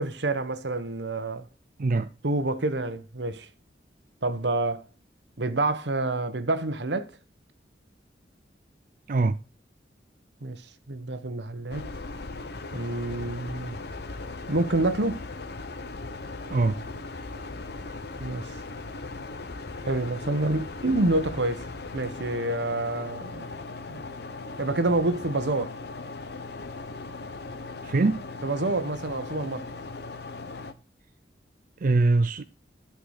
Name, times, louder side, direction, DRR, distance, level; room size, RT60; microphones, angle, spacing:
voice 1, 0.0-1.5 2.2-3.5 4.2-4.8 5.4-7.1 10.4-10.6 10.9-11.9 12.7-13.8 14.5-15.2 18.2-18.5 19.8-21.6 21.9-23.5 23.9-24.0 24.6-25.7 28.4-29.7, right 2 dB, 70° right, 1.2 m, -27 dB
voice 2, 9.1-9.4 16.5-16.8 27.8-28.2 31.8-32.4, right 3 dB, 50° right, 0.5 m, -23 dB
sound 1, 11.7-30.7, left 3 dB, 65° left, 1.1 m, -38 dB
11.5 x 5.9 x 6.5 m
head